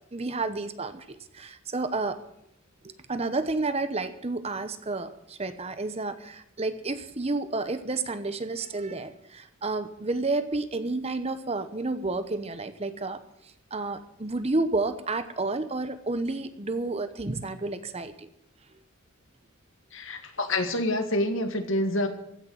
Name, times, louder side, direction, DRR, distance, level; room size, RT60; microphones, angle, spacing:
voice 1, 0.1-1.0 1.3-2.2 2.8-13.2 13.7-18.3, right 3 dB, 30° right, 11 dB, 0.9 m, -30 dB
voice 2, 19.9-22.1, left 1 dB, 65° left, 6 dB, 2.0 m, -27 dB
15.5 x 6.7 x 9.4 m, 0.77 s
head